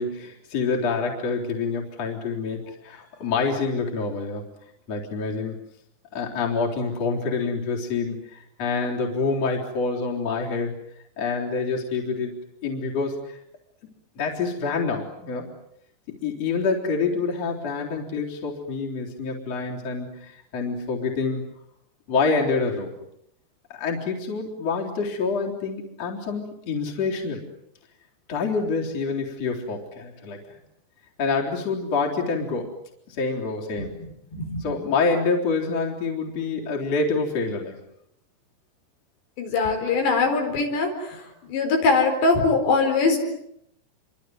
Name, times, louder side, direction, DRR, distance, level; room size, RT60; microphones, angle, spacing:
voice 1, 0.0-4.5 4.9-5.6 6.1-10.7 11.2-12.4 12.6-13.4 14.2-15.5 16.2-21.4 22.1-22.9 23.7-27.4 28.3-30.6 31.2-32.7 33.1-33.9 34.6-37.8, left 4 dB, 35° left, 0 dB, 4.6 m, -27 dB
voice 2, 34.3-34.7 39.4-43.2, left 4 dB, 75° left, 4 dB, 6.6 m, -22 dB
28.0 x 25.0 x 8.0 m, 0.75 s
omnidirectional pair, 5.0 m